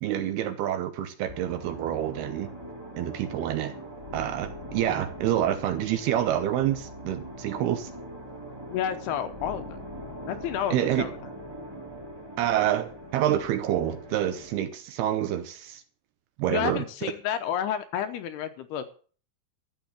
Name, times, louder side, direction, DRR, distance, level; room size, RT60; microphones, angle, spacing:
voice 1, 0.0-2.5 3.0-3.7 4.1-7.9 10.7-11.1 12.4-15.8 16.4-17.1, right 11 dB, 80° right, 2.5 m, -27 dB
sound 1, 1.3-14.6, equal, 30° right, 0.4 m, -42 dB
voice 2, 8.7-9.6 10.3-11.2 16.5-19.0, left 9 dB, 80° left, 2.6 m, -30 dB
12.5 x 7.0 x 8.1 m
omnidirectional pair, 5.2 m